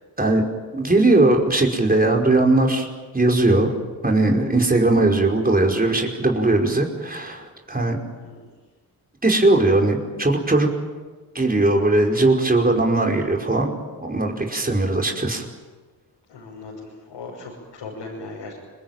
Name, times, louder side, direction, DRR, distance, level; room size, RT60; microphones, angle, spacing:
voice 1, 0.7-2.9 3.1-3.7 4.0-8.0 9.2-10.7 11.3-13.7 14.0-15.4, right 2 dB, 20° right, 1 dB, 5.0 m, -19 dB
voice 2, 16.3-18.6, left 3 dB, 85° left, -3 dB, 6.5 m, -38 dB
26.0 x 21.5 x 9.2 m, 1.3 s
supercardioid pair, 45°, 43 cm